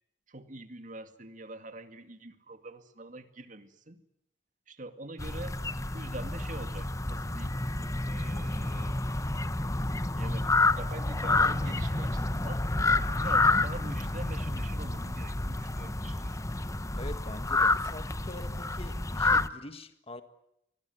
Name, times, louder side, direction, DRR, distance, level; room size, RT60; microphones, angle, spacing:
voice 1, 0.3-4.0 4.7-5.6 5.9-7.6 8.0-9.0 10.2-12.6 13.2-16.4, right 2 dB, 45° right, 8 dB, 2.2 m, -44 dB
sound 1, 5.2-19.5, left 2 dB, 20° left, 0.9 m, -29 dB
voice 2, 17.0-20.2, left 2 dB, 35° left, 9 dB, 1.6 m, -44 dB
25.0 x 21.0 x 9.4 m, 0.78 s
head